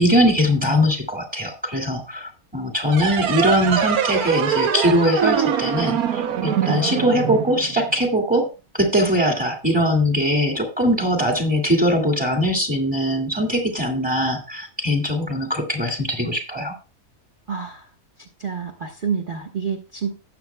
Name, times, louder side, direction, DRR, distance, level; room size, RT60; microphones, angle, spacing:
voice 1, 0.0-16.7, equal, 5° right, 3 dB, 2.1 m, -21 dB
sound 1, 2.9-8.1, right 8 dB, 85° right, 1.3 m, -23 dB
voice 2, 17.5-17.8 18.4-20.1, right 6 dB, 40° right, 2 dB, 1.2 m, -28 dB
17.5 x 7.2 x 2.2 m, 0.30 s
omnidirectional pair, 1.5 m